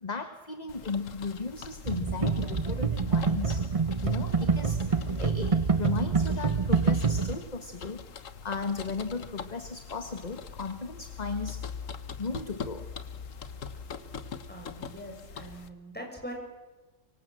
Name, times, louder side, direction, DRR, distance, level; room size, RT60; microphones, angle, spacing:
voice 1, 0.0-3.6 4.0-8.0 8.4-11.7 12.2-12.9, left 4 dB, 35° left, 8 dB, 1.5 m, -36 dB
sound 1, 0.7-15.7, left 6 dB, 85° left, 1.6 m, -43 dB
sound 2, 1.8-7.4, right 5 dB, 30° right, 0.9 m, -26 dB
voice 2, 14.5-16.3, equal, 5° left, 0 dB, 6.9 m, -42 dB
24.5 x 24.5 x 7.6 m, 1.2 s
omnidirectional pair, 1.3 m